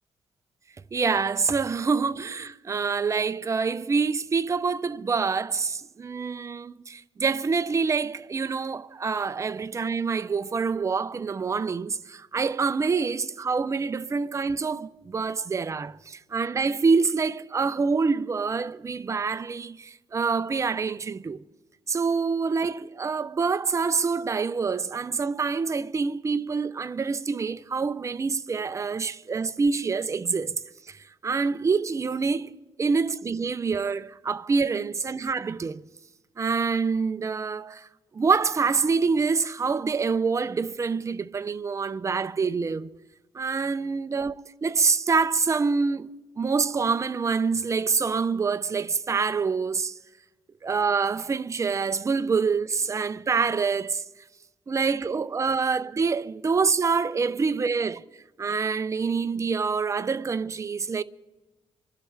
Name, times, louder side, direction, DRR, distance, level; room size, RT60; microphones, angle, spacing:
voice 1, 0.9-21.4 21.9-30.6 30.9-31.0 31.2-32.5 32.8-35.9 36.4-37.9 38.1-42.9 43.3-46.1 46.4-49.9 50.6-54.0 54.7-58.0 58.4-61.0, right 5 dB, 30° right, 0.5 m, -26 dB
27.0 x 11.5 x 3.3 m
cardioid pair, 110°, 11 cm